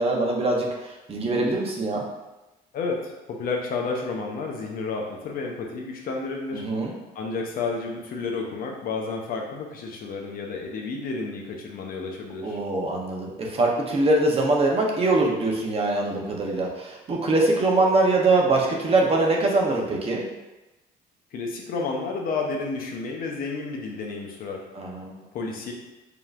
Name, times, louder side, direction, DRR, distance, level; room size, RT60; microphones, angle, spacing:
voice 1, 0.0-2.0 6.5-6.9 12.4-20.2 24.7-25.1, right 2 dB, 35° right, -1 dB, 0.8 m, -23 dB
voice 2, 2.7-6.6 7.1-12.6 21.3-24.6 25.3-25.7, left 4 dB, 60° left, 1 dB, 0.7 m, -31 dB
5.1 x 2.9 x 2.5 m, 1.0 s
cardioid pair, 110°, 17 cm